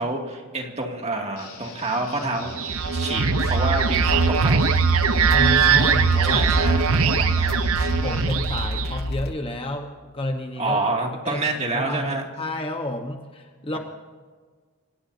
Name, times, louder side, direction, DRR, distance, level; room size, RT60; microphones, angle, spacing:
voice 1, 0.0-2.6 2.9-4.7 6.2-7.6 10.6-12.2 13.7-13.8, right 2 dB, 30° right, 1 dB, 2.4 m, -28 dB
Guitar, 1.4-8.2, left 4 dB, 85° left, 6.2 m, -42 dB
sound 1, 2.4-9.1, right 6 dB, 70° right, 0.8 m, -21 dB
sound 2, 3.2-9.3, left 1 dB, 45° left, 1.0 m, -28 dB
voice 2, 5.1-6.5 8.0-10.8 11.2-11.4 11.7-13.8, left 1 dB, 25° left, 4 dB, 1.1 m, -30 dB
27.5 x 18.0 x 2.8 m, 1.5 s
head